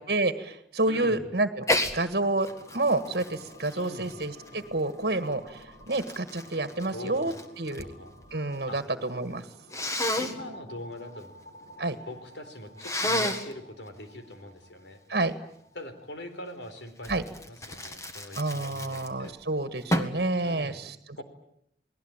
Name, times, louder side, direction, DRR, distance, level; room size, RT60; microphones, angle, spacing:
voice 1, 0.0-1.6 1.9-2.5 2.7-7.9 8.3-9.5 11.8-12.0 15.1-15.3 17.1-17.2 18.4-21.2, right 2 dB, 60° right, 10 dB, 1.7 m, -29 dB
voice 2, 0.9-1.3 3.7-4.1 6.9-7.4 7.8-8.1 8.7-8.8 10.2-11.3 12.1-15.0 15.7-19.4 20.4-20.8 21.2-21.3, left 1 dB, 85° left, 8 dB, 4.1 m, -42 dB
Sneeze, 1.6-2.0 2.4-4.8 5.5-7.9 8.2-8.8 9.7-10.3 12.8-13.5 17.0-19.3 19.9-20.2, left 1 dB, 15° left, 1.7 m, -31 dB
sound 1, 2.2-16.2, equal, 50° left, 7.3 m, -51 dB
29.5 x 19.5 x 8.9 m, 0.74 s
head